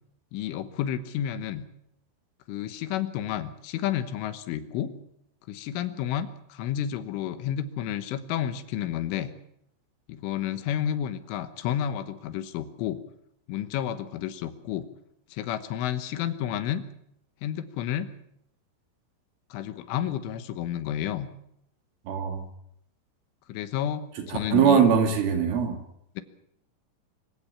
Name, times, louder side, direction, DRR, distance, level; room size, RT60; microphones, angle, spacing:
voice 1, 0.3-1.7 2.5-5.0 5.5-9.3 10.1-13.0 13.5-14.9 15.3-16.8 17.4-18.1 19.5-21.3 23.5-24.8 26.2-26.3, left 10 dB, 80° left, 11 dB, 3.6 m, -31 dB
voice 2, 22.1-22.4 24.2-25.8, right 7 dB, 80° right, 4 dB, 5.2 m, -22 dB
25.5 x 16.0 x 7.2 m, 0.75 s
omnidirectional pair, 5.8 m